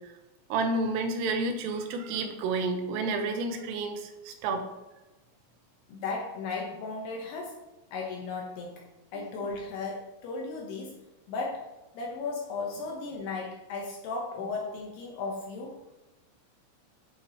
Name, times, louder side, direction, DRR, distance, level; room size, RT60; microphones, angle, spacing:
voice 1, 0.5-4.7, right 3 dB, 90° right, 5 dB, 3.6 m, -30 dB
voice 2, 5.9-7.6 7.9-8.9 9.1-11.0 11.3-15.8, left 3 dB, 75° left, 0 dB, 2.5 m, -35 dB
11.0 x 7.2 x 3.0 m, 1.0 s
omnidirectional pair, 5.9 m